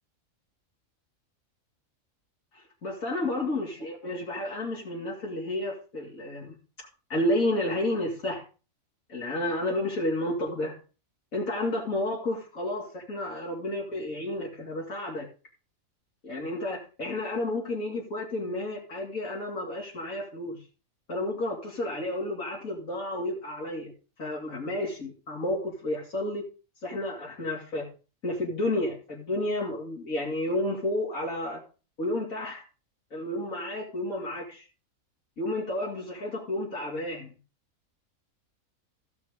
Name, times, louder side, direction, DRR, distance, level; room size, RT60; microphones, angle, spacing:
voice 1, 2.5-6.6 7.1-8.4 9.1-10.8 11.3-15.3 16.2-20.6 21.1-23.9 24.2-26.4 26.8-27.8 28.2-31.6 32.0-32.6 33.1-34.7 35.4-37.3, left 1 dB, 75° left, 3.2 m, -31 dB
15.0 x 6.2 x 5.2 m
omnidirectional pair, 1.4 m